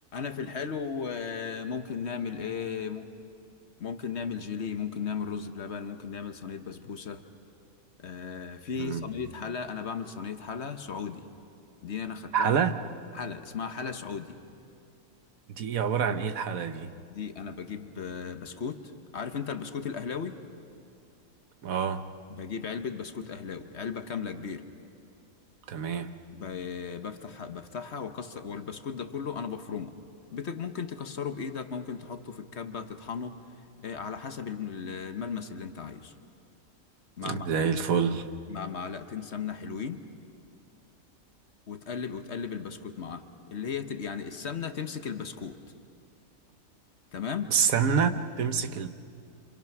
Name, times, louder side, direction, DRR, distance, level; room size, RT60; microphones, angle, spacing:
voice 1, 0.1-3.1 3.8-7.2 8.0-11.3 11.8-12.6 13.1-14.4 17.1-18.8 19.1-20.4 22.3-24.6 26.3-29.9 30.3-33.4 33.8-36.1 37.2-37.5 38.5-40.0 41.7-45.6 47.1-47.5, left 6 dB, 50° left, 8 dB, 1.2 m, -36 dB
voice 2, 12.3-12.8 15.5-16.9 21.6-22.1 25.7-26.1 37.2-38.3 47.5-48.9, right 7 dB, 70° right, 9 dB, 1.3 m, -27 dB
27.5 x 27.5 x 6.0 m, 2.5 s
omnidirectional pair, 1.5 m